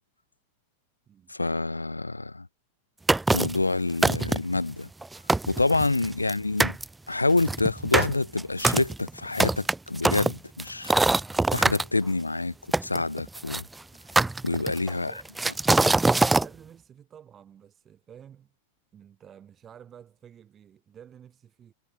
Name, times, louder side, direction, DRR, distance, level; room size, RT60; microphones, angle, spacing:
voice 1, 1.3-2.5 3.3-4.9 5.5-6.8 7.1-10.9 11.5-12.5 12.8-13.6 14.4-15.1, left 2 dB, 80° left, 0.3 m, -27 dB
sound 1, 3.1-3.6 4.0-4.6 5.0-5.1 5.3-6.3 6.6-6.8 7.4-11.8 12.7-13.6 14.2-14.9 15.4-16.5, right 2 dB, 10° right, 0.4 m, -23 dB
voice 2, 14.9-15.4 16.2-18.5 18.9-21.7, right 9 dB, 25° right, 4.6 m, -51 dB
figure-of-eight pair, 90°, 0 cm